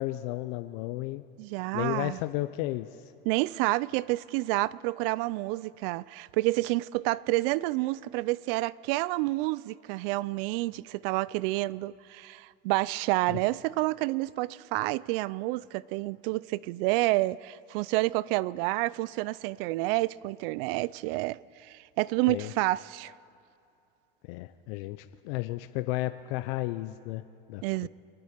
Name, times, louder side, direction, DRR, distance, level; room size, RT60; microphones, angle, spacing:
voice 1, 0.0-1.2 1.7-2.9 13.3-13.4 22.3-22.5 24.3-27.2 27.5-27.9, left 17 dB, 65° left, 0.6 m, -33 dB
voice 2, 1.4-2.2 3.3-23.1 27.6-27.9, right 20 dB, 70° right, 0.4 m, -29 dB
25.5 x 9.5 x 5.1 m
supercardioid pair, 120°, 30 cm